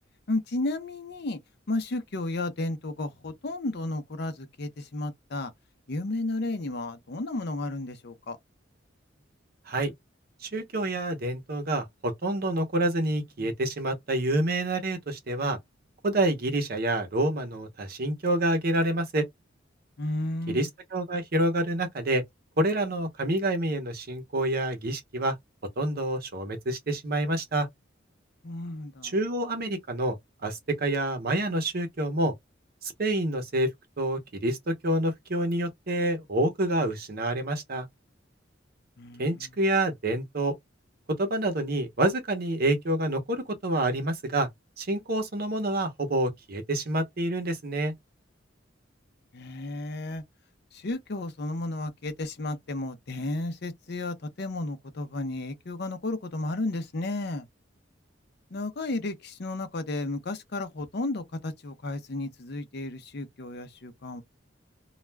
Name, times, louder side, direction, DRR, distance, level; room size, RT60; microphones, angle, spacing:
voice 1, 0.3-1.4 1.7-5.5 5.9-8.4 20.0-20.7 28.4-29.1 39.0-39.5 49.3-50.2 50.7-57.5 58.5-64.2, left 2 dB, 60° left, 0.7 m, -33 dB
voice 2, 10.4-15.6 16.0-19.3 20.5-22.2 22.6-25.3 25.8-27.7 29.0-30.2 30.4-32.3 32.8-33.7 34.0-37.9 39.2-40.6 41.2-44.5 44.8-47.9, right 1 dB, 55° right, 0.8 m, -27 dB
2.3 x 2.2 x 3.2 m
head